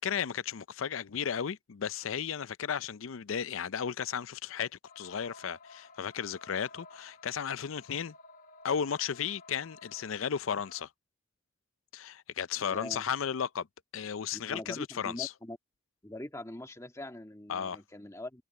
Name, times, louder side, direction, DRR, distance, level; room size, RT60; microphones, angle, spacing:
voice 1, 0.0-4.7 5.0-8.1 8.6-10.9 11.9-13.7 13.9-15.3 17.5-17.8, left 7 dB, 90° left, 0.5 m, -34 dB
sound 1, 4.8-10.9, left 3 dB, 40° left, 1.4 m, -55 dB
voice 2, 12.6-13.1 14.3-15.6 16.0-18.4, left 1 dB, 15° left, 1.9 m, -43 dB
head